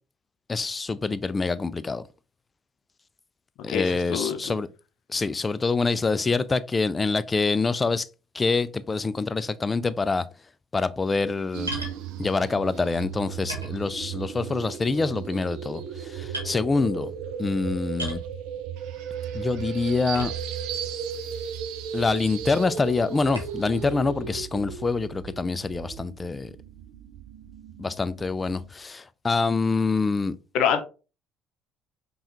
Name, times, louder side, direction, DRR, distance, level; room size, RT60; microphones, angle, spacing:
voice 1, 0.5-2.0 3.6-4.7 5.1-8.1 8.3-10.3 10.7-11.7 12.2-17.1 17.4-18.2 19.3-20.3 21.9-26.5 27.8-30.4, left 4 dB, 25° left, 0.3 m, -26 dB
voice 2, 3.7-4.5 30.5-30.8, left 8 dB, 60° left, 0.6 m, -25 dB
sound 1, 11.5-28.7, right 8 dB, 65° right, 0.4 m, -36 dB
sound 2, 11.7-12.0 12.9-13.0 13.5-14.3 14.7-15.1 15.7-16.0 16.3-16.5 18.0-18.3 20.1-20.7 21.4-21.5 23.3-23.6, right 1 dB, 90° right, 0.9 m, -36 dB
5.4 x 2.3 x 2.9 m
figure-of-eight pair, 55°, 0 cm